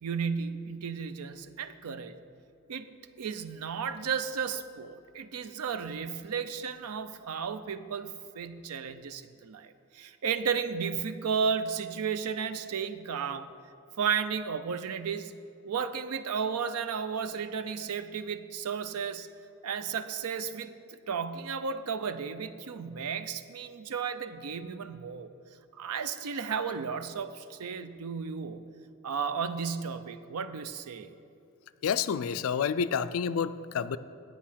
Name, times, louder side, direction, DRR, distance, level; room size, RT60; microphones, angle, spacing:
voice 1, 0.0-2.2 2.7-2.9 3.2-13.5 14.0-15.3 15.6-19.3 19.6-25.3 25.7-28.7 29.0-31.1, right 6 dB, 85° right, 12 dB, 0.5 m, -33 dB
voice 2, 31.8-34.0, left 7 dB, 70° left, 14 dB, 0.4 m, -29 dB
8.5 x 8.4 x 5.7 m, 2.6 s
head